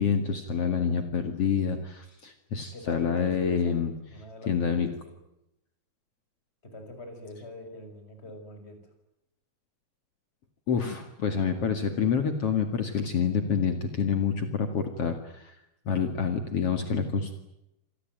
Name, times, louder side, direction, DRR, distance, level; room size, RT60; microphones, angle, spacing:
voice 1, 0.0-3.9 4.5-4.9 10.7-15.5 15.9-17.3, left 6 dB, 55° left, 8 dB, 3.0 m, -27 dB
voice 2, 2.7-3.7 4.1-4.9 6.6-8.8, left 1 dB, 20° left, 6 dB, 6.4 m, -43 dB
28.0 x 19.5 x 9.3 m, 0.85 s
omnidirectional pair, 3.4 m